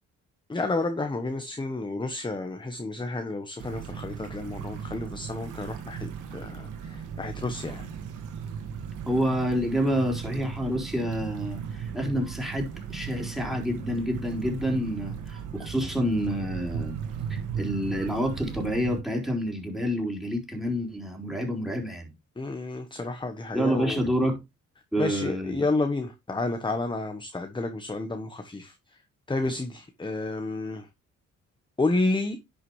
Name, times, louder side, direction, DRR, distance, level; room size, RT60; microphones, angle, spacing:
voice 1, 0.5-7.9 22.4-24.0 25.0-28.8 29.3-30.9 31.8-32.4, left 2 dB, 15° left, 1.1 m, -30 dB
sound 1, 3.6-19.0, right 7 dB, 85° right, 2.2 m, -36 dB
voice 2, 9.1-17.0 17.3-22.1 23.5-24.4 24.9-25.5, equal, ahead, 4.1 m, -28 dB
10.5 x 6.1 x 3.2 m
cardioid pair, 90°, 30 cm